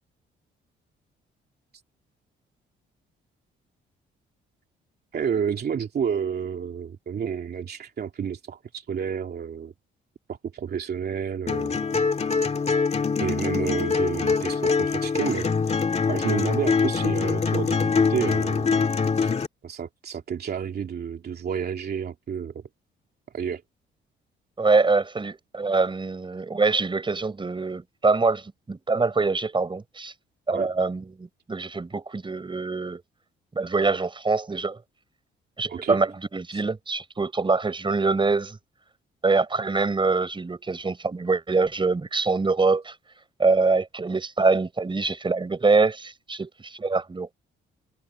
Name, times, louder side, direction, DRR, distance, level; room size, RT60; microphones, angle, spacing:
voice 1, 5.1-9.7 10.3-11.8 13.2-15.5 16.1-18.8 19.2-19.3 19.6-22.6 23.3-23.6 30.5-30.7 35.7-36.0 36.5-36.6, right 7 dB, 55° right, 2.7 m, -30 dB
sound 1, 11.5-19.5, left 5 dB, 35° left, 2.0 m, -24 dB
voice 2, 24.6-30.1 30.5-33.0 33.5-34.8 35.6-38.6 39.2-42.9 43.4-47.3, right 3 dB, 25° right, 4.7 m, -24 dB
cardioid pair, 90°, 20 cm